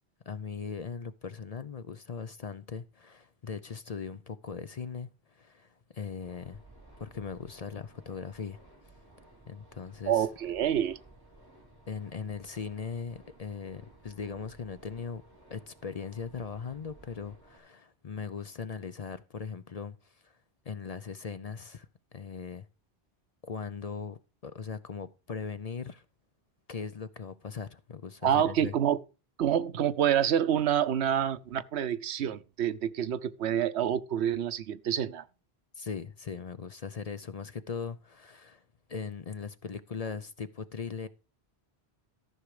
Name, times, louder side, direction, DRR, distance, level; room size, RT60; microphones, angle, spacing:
voice 1, 0.3-6.6 7.0-8.6 9.5-10.3 11.9-15.2 15.5-20.4 20.7-22.7 23.4-26.0 26.7-28.7 35.7-38.6 38.9-41.1, left 5 dB, 45° left, 0.6 m, -39 dB
sound 1, 6.2-17.6, right 1 dB, 20° right, 4.0 m, -56 dB
voice 2, 10.1-11.0 28.2-29.0 29.4-35.2, right 9 dB, 90° right, 1.0 m, -27 dB
13.5 x 6.4 x 4.9 m
omnidirectional pair, 1.1 m